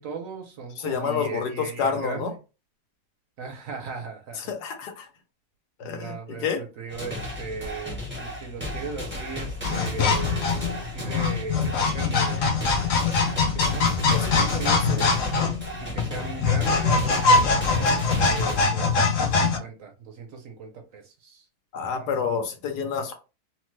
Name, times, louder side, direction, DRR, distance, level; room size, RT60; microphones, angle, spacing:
voice 1, 0.0-2.3 3.4-4.5 5.8-12.7 13.2-15.1 15.8-21.5 21.9-22.1, right 5 dB, 65° right, 3 dB, 1.0 m, -38 dB
voice 2, 0.8-2.3 4.4-5.1 5.8-6.6 14.1-14.5 14.9-15.0 21.7-23.2, left 6 dB, 85° left, 5 dB, 1.3 m, -29 dB
sound 1, 6.9-18.6, left 1 dB, 10° right, 0.6 m, -34 dB
sound 2, 9.6-19.6, left 4 dB, 65° left, 0.9 m, -23 dB
3.0 x 2.1 x 3.1 m, 0.30 s
omnidirectional pair, 1.7 m